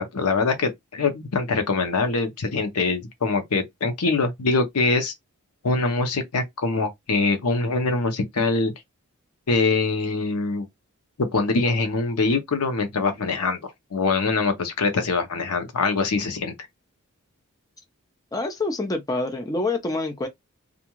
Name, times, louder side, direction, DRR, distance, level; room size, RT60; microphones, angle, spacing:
voice 1, 0.0-5.1 5.6-8.7 9.5-10.7 11.2-16.5, left 3 dB, 85° left, 0.8 m, -23 dB
voice 2, 18.3-20.3, left 2 dB, 15° left, 0.4 m, -26 dB
2.4 x 2.3 x 2.9 m
head